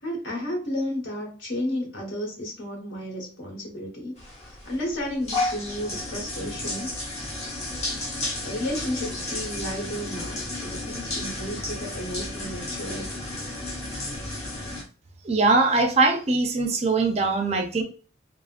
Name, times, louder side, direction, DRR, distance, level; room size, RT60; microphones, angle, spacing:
voice 1, 0.0-6.9 8.4-13.2, equal, 70° left, -1 dB, 1.2 m, -32 dB
sound 1, 4.2-14.8, left 2 dB, 35° left, 0.8 m, -33 dB
voice 2, 15.2-17.8, right 3 dB, 35° right, 4 dB, 0.4 m, -21 dB
3.5 x 2.0 x 2.4 m, 0.39 s
head